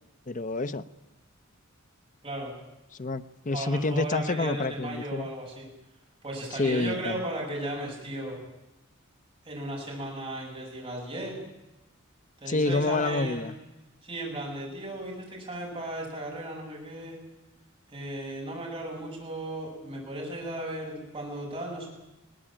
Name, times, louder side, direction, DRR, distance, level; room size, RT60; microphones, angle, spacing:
voice 1, 0.3-0.9 3.0-5.3 6.6-7.2 12.5-13.5, left 3 dB, 35° left, 12 dB, 0.7 m, -28 dB
voice 2, 3.5-5.7 6.2-8.4 9.4-11.4 12.4-13.4 14.0-17.2 17.9-21.9, right 1 dB, 25° right, -3 dB, 7.8 m, -35 dB
21.0 x 18.5 x 8.9 m, 1.0 s
head